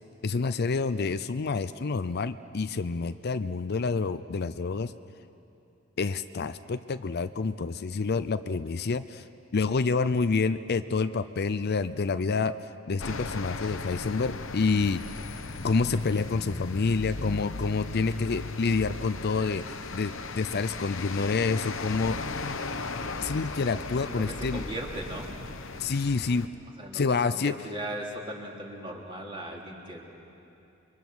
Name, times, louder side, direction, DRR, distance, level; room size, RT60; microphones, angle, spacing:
voice 1, 0.2-4.9 6.0-9.2 9.5-12.6 12.9-15.0 15.6-19.6 19.9-22.2 23.2-24.6 25.8-26.5 26.9-27.6, left 4 dB, 50° left, 12 dB, 0.5 m, -28 dB
sound 1, 13.0-26.5, left 3 dB, 70° left, 1.0 m, -37 dB
voice 2, 24.0-25.4 26.8-27.0 27.3-30.0, right 1 dB, 25° right, -1 dB, 3.0 m, -38 dB
29.5 x 23.5 x 6.2 m, 2.9 s
head